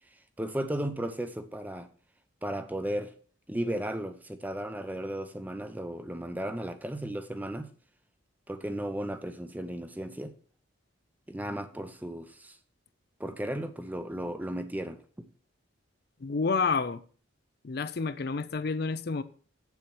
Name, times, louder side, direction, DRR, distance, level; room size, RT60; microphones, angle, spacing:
voice 1, 0.4-1.9 2.4-3.1 3.5-7.7 8.5-10.3 11.3-12.6 13.2-15.3, right 1 dB, 10° right, 0.7 m, -35 dB
voice 2, 16.2-17.0 17.6-19.2, left 4 dB, 55° left, 0.5 m, -29 dB
7.9 x 7.1 x 6.0 m
head